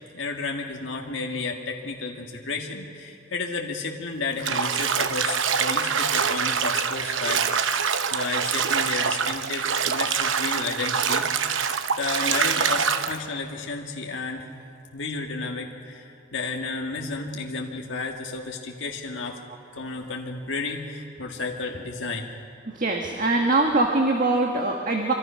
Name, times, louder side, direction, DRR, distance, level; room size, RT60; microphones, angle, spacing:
voice 1, 0.1-7.6 8.1-11.3 11.9-14.5 14.9-19.4 19.7-22.3, left 3 dB, 65° left, 0 dB, 1.8 m, -32 dB
Bathtub (filling or washing), 4.4-13.2, right 6 dB, 70° right, 0.9 m, -25 dB
voice 2, 22.7-25.1, right 2 dB, 40° right, 2 dB, 1.6 m, -22 dB
25.5 x 25.0 x 5.8 m, 2.5 s
head